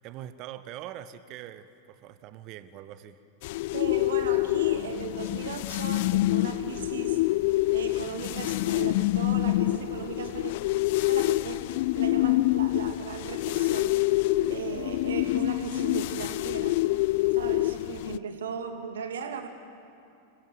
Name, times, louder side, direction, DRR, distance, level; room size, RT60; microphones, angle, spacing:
voice 1, 0.0-3.2, right 12 dB, 40° right, 14 dB, 1.1 m, -43 dB
sound 1, 3.4-18.2, left 17 dB, 50° left, 0.6 m, -26 dB
voice 2, 3.7-7.2 7.7-10.5 11.1-11.6 12.0-13.9 14.5-16.8 17.3-19.5, right 6 dB, 65° right, 6 dB, 2.4 m, -37 dB
27.5 x 20.5 x 7.8 m, 2.6 s
figure-of-eight pair, 90°, 0 cm